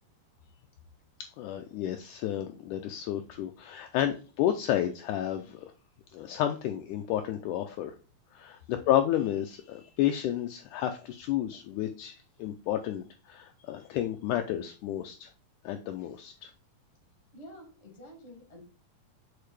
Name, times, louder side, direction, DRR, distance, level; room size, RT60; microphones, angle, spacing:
voice 1, 1.2-5.7 6.1-8.0 8.3-15.3 15.6-16.5, left 11 dB, 90° left, 6 dB, 1.7 m, -31 dB
voice 2, 17.3-18.6, equal, 35° left, 3 dB, 1.1 m, -49 dB
6.8 x 4.4 x 3.2 m, 0.35 s
omnidirectional pair, 4.2 m